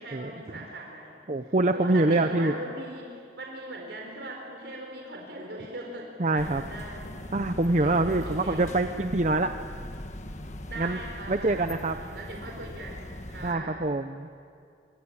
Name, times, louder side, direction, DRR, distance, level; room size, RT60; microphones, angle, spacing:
voice 1, 0.0-7.1 7.7-8.8 10.7-13.9, right 1 dB, 75° right, 0 dB, 4.3 m, -40 dB
voice 2, 1.3-2.5 6.2-6.6 7.3-9.5 10.8-11.0 11.3-12.0 13.4-14.3, right 2 dB, 40° right, 8 dB, 0.7 m, -25 dB
sound 1, 6.4-13.5, left 1 dB, 40° left, 1.4 m, -40 dB
26.5 x 25.0 x 8.8 m, 2.4 s
head